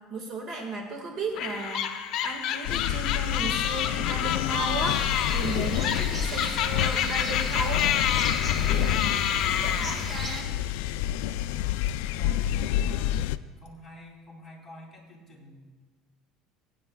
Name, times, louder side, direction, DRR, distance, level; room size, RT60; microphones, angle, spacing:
voice 1, 0.0-8.1 8.6-10.5, right 2 dB, 45° right, 2 dB, 1.7 m, -35 dB
sound 1, 1.4-10.4, left 10 dB, 55° left, 0.7 m, -29 dB
sound 2, 2.6-13.4, left 12 dB, 85° left, 0.3 m, -29 dB
sound 3, 4.9-10.4, right 1 dB, 20° right, 1.4 m, -36 dB
voice 2, 12.2-13.2 13.6-15.7, left 1 dB, 5° left, -4 dB, 2.9 m, -48 dB
21.0 x 9.4 x 2.3 m, 1.4 s
cardioid pair, 135°, 0 cm